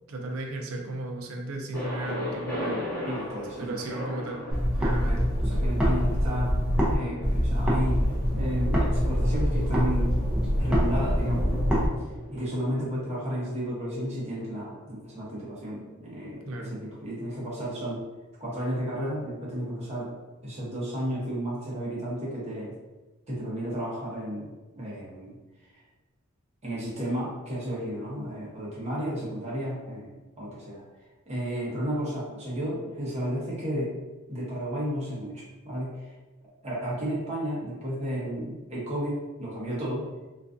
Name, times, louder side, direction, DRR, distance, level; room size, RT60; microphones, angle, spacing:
voice 1, 0.1-2.8 3.6-4.4 4.8-5.3 12.8-12.9 15.7-16.0 16.5-16.8, right 2 dB, 70° right, 1 dB, 0.4 m, -35 dB
Thunder, 1.7-13.5, left 1 dB, 15° left, 1.0 m, -38 dB
voice 2, 3.0-3.8 5.1-5.2 5.4-6.5 6.9-8.0 8.4-10.1 10.6-11.9 12.3-18.0 18.4-20.1 20.4-22.7 23.3-25.3 26.6-30.8 31.3-33.9 34.3-36.1 36.6-40.1, equal, 30° right, -6 dB, 0.8 m, -32 dB
sound 1, 4.5-7.0 7.2-11.9, equal, 5° right, 0.5 m, -25 dB
2.4 x 2.2 x 2.5 m, 1.1 s
head